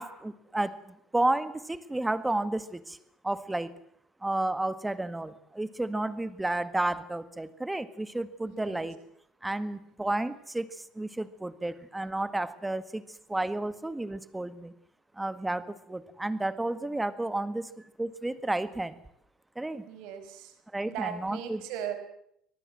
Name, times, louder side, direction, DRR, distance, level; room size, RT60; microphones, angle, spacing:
voice 1, 0.0-3.0 3.2-3.7 4.2-9.0 9.4-14.7 15.2-19.0 19.6-19.9 20.7-21.6, right 2 dB, 10° right, 13 dB, 1.8 m, -32 dB
voice 2, 8.4-8.9 19.9-20.5 20.8-22.0, right 9 dB, 80° right, 9 dB, 5.2 m, -38 dB
25.0 x 19.0 x 7.7 m, 0.73 s
cardioid pair, 110°, 0 cm